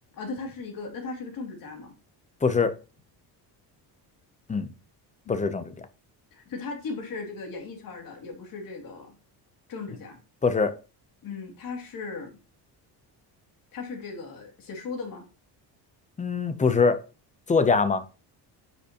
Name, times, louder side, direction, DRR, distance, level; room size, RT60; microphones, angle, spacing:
voice 1, 0.1-1.9 5.2-5.7 6.3-9.1 9.7-10.2 11.2-12.3 13.7-15.2, left 4 dB, 55° left, 2.6 m, -37 dB
voice 2, 2.4-2.7 4.5-4.7 5.3-5.6 10.4-10.7 16.2-17.0 17.5-18.1, left 4 dB, 20° left, 0.6 m, -23 dB
9.7 x 6.9 x 2.9 m
cardioid pair, 165°, 42 cm